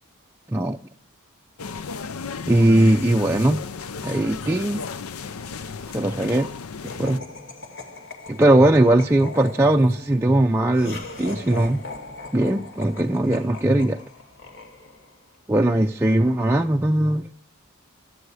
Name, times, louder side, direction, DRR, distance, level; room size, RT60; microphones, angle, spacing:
sound 1, 1.6-7.2, left 5 dB, 85° left, 0.6 m, -34 dB
voice 1, 2.5-3.6 4.0-4.8 5.9-6.5 7.0-7.2 8.3-11.8 12.3-14.0 15.5-17.3, right 1 dB, 10° right, 0.4 m, -19 dB
Laughter, 6.9-15.2, left 3 dB, 60° left, 2.3 m, -40 dB
16.0 x 12.0 x 4.9 m
head